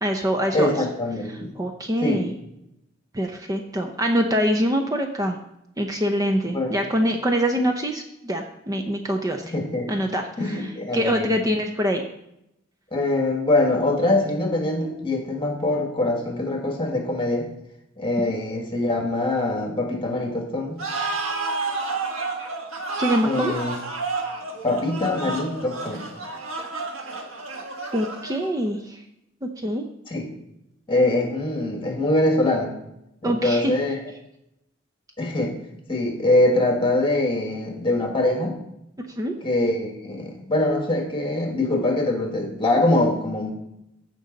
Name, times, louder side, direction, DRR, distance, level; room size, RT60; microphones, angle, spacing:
voice 1, 0.0-0.7 1.5-2.3 3.1-5.4 5.8-9.4 9.9-10.7 10.9-12.0 23.0-23.5 27.9-29.0 29.4-29.9 33.2-33.7 39.2-39.4, equal, 20° right, 4 dB, 0.6 m, -24 dB
voice 2, 0.5-1.5 2.0-2.3 6.5-6.8 9.5-9.9 10.4-11.4 12.9-17.5 18.0-20.8 23.2-23.7 24.6-26.0 30.1-30.3 30.9-32.7 33.2-34.0 35.2-35.5 35.9-38.5 39.4-43.5, left 2 dB, 25° left, 2 dB, 1.7 m, -23 dB
sound 1, 20.8-28.6, right 3 dB, 80° right, 1.5 m, -30 dB
15.5 x 5.2 x 3.9 m, 0.81 s
head